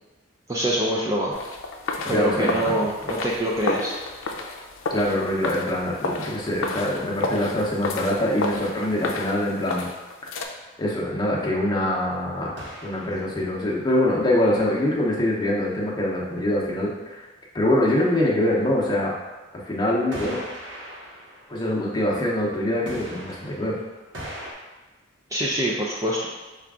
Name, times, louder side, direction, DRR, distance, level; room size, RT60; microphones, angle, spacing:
voice 1, 0.5-1.4 2.1-3.9 25.3-26.3, equal, 15° right, -4 dB, 0.4 m, -25 dB
sound 1, 1.3-10.5, left 3 dB, 85° left, 0.5 m, -31 dB
voice 2, 2.0-2.8 4.9-9.9 10.8-17.2 17.5-19.1 19.5-20.4 21.5-23.8, left 1 dB, 20° left, -4 dB, 0.8 m, -24 dB
sound 2, 8.4-9.4 12.6-13.7 20.1-22.4 22.9-24.5, equal, 65° right, 1.0 m, -40 dB
5.7 x 2.4 x 3.6 m, 1.2 s
head